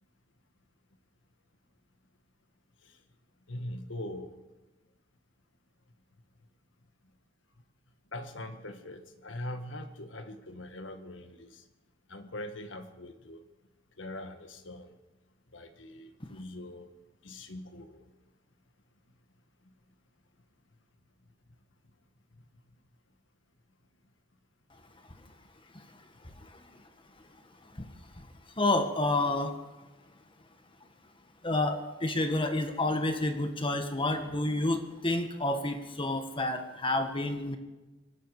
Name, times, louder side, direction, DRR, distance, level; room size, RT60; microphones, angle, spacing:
voice 1, 3.5-4.4 8.1-11.6 12.1-13.4 14.0-14.9 15.5-16.9 17.2-18.1, left 1 dB, 80° left, 8 dB, 1.6 m, -42 dB
voice 2, 28.6-29.5 31.4-37.6, left 2 dB, 30° left, 6 dB, 1.6 m, -29 dB
25.5 x 11.5 x 4.9 m, 1.1 s
head